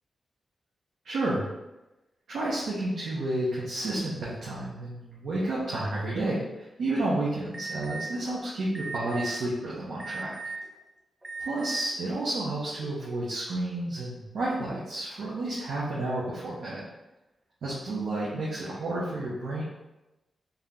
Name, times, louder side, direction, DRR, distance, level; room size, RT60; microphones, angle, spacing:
voice 1, 1.0-1.5 2.3-10.3 11.4-16.8 17.6-19.6, right 2 dB, 90° right, -7 dB, 0.8 m, -31 dB
Alarm, 7.5-8.1 8.7-9.3 10.0-10.6 11.2-11.8, right 4 dB, 20° right, 0.8 m, -37 dB
3.5 x 2.9 x 3.6 m, 1.0 s
wide cardioid pair, 100°, 0 cm